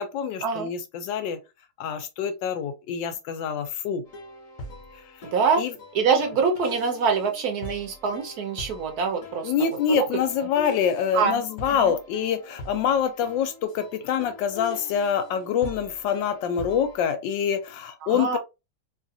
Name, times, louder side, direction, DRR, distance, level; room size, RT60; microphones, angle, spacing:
voice 1, 0.0-1.4 1.8-4.0 4.9-5.0 5.6-5.7 9.4-18.4, left 7 dB, 80° left, 1.3 m, -26 dB
sound 1, 4.1-17.0, left 3 dB, 60° left, 1.0 m, -42 dB
voice 2, 5.3-5.6 5.9-9.5 10.0-10.1 11.1-11.4 11.8-11.9 18.0-18.4, right 5 dB, 70° right, 1.0 m, -24 dB
3.2 x 2.4 x 2.6 m
omnidirectional pair, 2.0 m